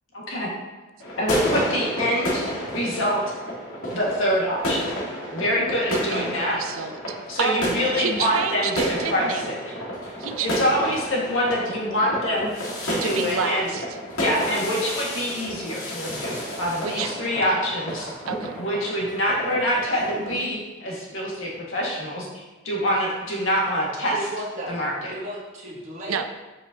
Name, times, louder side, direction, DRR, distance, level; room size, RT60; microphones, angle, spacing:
voice 1, 0.1-0.5 1.2-2.4 2.7-3.2 3.9-4.8 5.3-6.6 7.3-9.6 10.4-12.6 12.9-13.7 14.2-18.1 18.5-24.1 24.7-25.1, equal, 75° left, -4 dB, 1.7 m, -25 dB
sound 1, 1.0-20.4, equal, 90° left, 1.8 m, -31 dB
voice 2, 5.9-9.5 10.2-10.6 13.0-14.0 16.8-17.7 18.3-18.6 26.1-26.3, right 6 dB, 85° right, 8 dB, 0.5 m, -30 dB
voice 3, 24.1-24.7 25.1-26.3, right 1 dB, 35° right, -5 dB, 1.2 m, -34 dB
7.5 x 5.3 x 2.8 m, 1.2 s
head